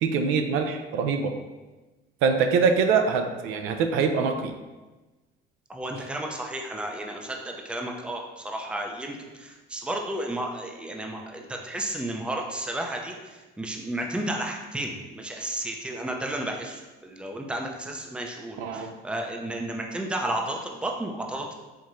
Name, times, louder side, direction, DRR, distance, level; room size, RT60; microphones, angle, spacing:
voice 1, 0.0-1.3 2.2-4.5 18.6-18.9, right 5 dB, 80° right, 5 dB, 0.4 m, -24 dB
voice 2, 5.7-21.5, right 1 dB, 5° right, 1 dB, 0.5 m, -32 dB
4.5 x 2.9 x 2.5 m, 1.2 s
cardioid pair, 110°, 21 cm